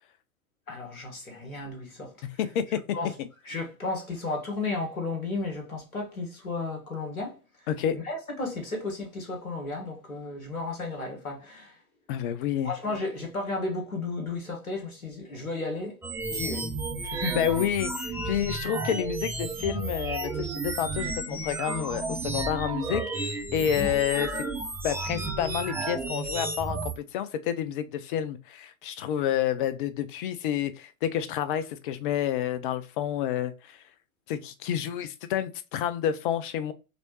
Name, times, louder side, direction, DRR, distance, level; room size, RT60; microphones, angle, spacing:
voice 1, 0.7-2.4 2.9-3.1 3.5-7.4 7.9-11.8 12.6-16.0 16.3-16.7 17.1-17.4 23.6-23.9, left 3 dB, 75° left, 1.8 m, -33 dB
voice 2, 2.2-2.8 3.2-3.3 7.7-8.0 12.1-12.7 17.1-24.4 24.8-33.8 34.3-36.7, left 10 dB, 40° left, 0.5 m, -29 dB
sound 1, 16.0-26.9, right 2 dB, 5° right, 0.8 m, -32 dB
5.1 x 3.1 x 3.1 m
figure-of-eight pair, 90°, 43 cm